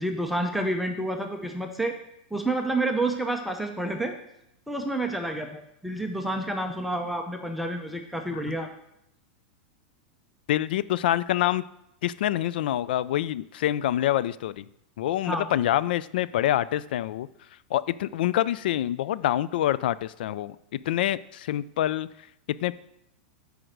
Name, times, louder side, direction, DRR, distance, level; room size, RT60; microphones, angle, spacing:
voice 1, 0.0-1.9 2.3-4.1 4.7-8.7 15.2-15.5, right 1 dB, ahead, 3 dB, 0.6 m, -29 dB
voice 2, 10.5-11.6 12.0-14.6 15.0-17.3 17.7-20.6 20.9-22.1 22.6-22.7, left 12 dB, 75° left, 18 dB, 0.3 m, -26 dB
7.7 x 5.1 x 6.6 m, 0.80 s
supercardioid pair, 150°, 5 cm